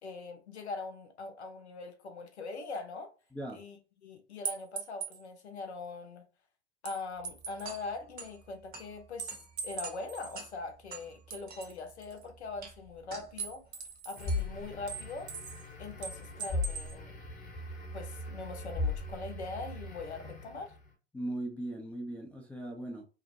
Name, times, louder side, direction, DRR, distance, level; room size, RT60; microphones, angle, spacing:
voice 1, 0.0-3.1 3.5-6.2 6.8-13.6 14.0-15.3 15.8-17.2 17.9-20.7, left 3 dB, 85° left, 0.6 m, -42 dB
sound 1, 4.4-5.2 6.9-7.8 9.2-10.4 11.3-12.2 13.4-14.4 14.9-15.7 16.0-17.0, right 6 dB, 75° right, 0.6 m, -41 dB
sound 2, 7.2-16.3, right 5 dB, 30° right, 0.7 m, -50 dB
sound 3, 14.2-20.9, left 2 dB, 25° left, 0.8 m, -38 dB
voice 2, 21.1-23.0, right 1 dB, 5° left, 0.3 m, -38 dB
2.5 x 2.1 x 2.6 m
figure-of-eight pair, 85°, 33 cm